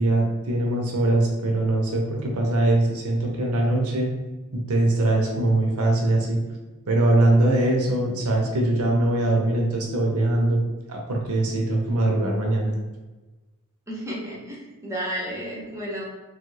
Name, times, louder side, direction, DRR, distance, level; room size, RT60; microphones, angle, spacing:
voice 1, 0.0-4.1 4.5-6.4 6.9-10.6 10.9-12.7, right 2 dB, 75° right, 0 dB, 0.7 m, -22 dB
voice 2, 13.9-16.0, equal, 15° right, -5 dB, 0.7 m, -32 dB
3.1 x 2.3 x 3.1 m, 1.2 s
head